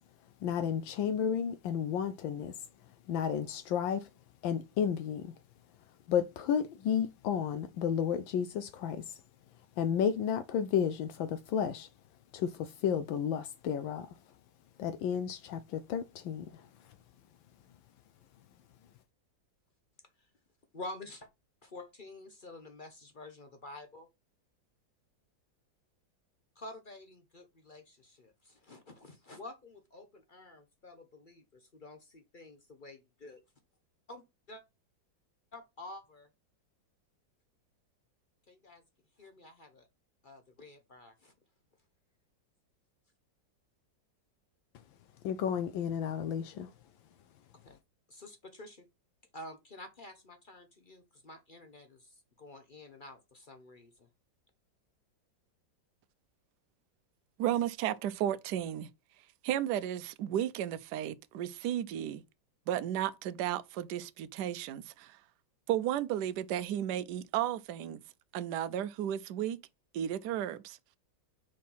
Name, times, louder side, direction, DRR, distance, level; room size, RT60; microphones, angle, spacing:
voice 1, 0.4-2.5 3.1-4.0 4.4-5.3 6.1-9.0 9.8-11.9 12.3-14.1 14.8-16.5 45.2-46.7, left 8 dB, 80° left, 1.4 m, -32 dB
voice 2, 20.7-21.3 21.6-24.1 26.6-33.4 34.1-34.6 35.5-36.3 38.5-38.8 39.2-39.9 40.2-41.3 47.6-47.8 48.1-48.9 49.3-54.1, left 2 dB, 45° left, 0.6 m, -49 dB
voice 3, 57.4-58.9 59.4-62.2 62.7-65.2 65.7-68.0 68.3-69.6 69.9-70.8, right 11 dB, 70° right, 1.1 m, -33 dB
5.2 x 4.3 x 5.4 m
omnidirectional pair, 2.1 m